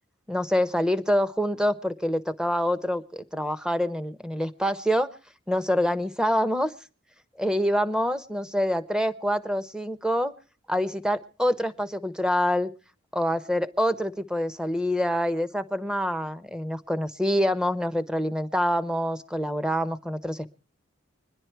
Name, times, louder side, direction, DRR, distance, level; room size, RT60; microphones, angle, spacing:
voice 1, 0.3-5.1 5.5-6.7 7.4-10.3 10.7-12.7 13.1-20.5, equal, 5° right, 13 dB, 0.7 m, -26 dB
25.0 x 10.5 x 4.6 m, 0.36 s
head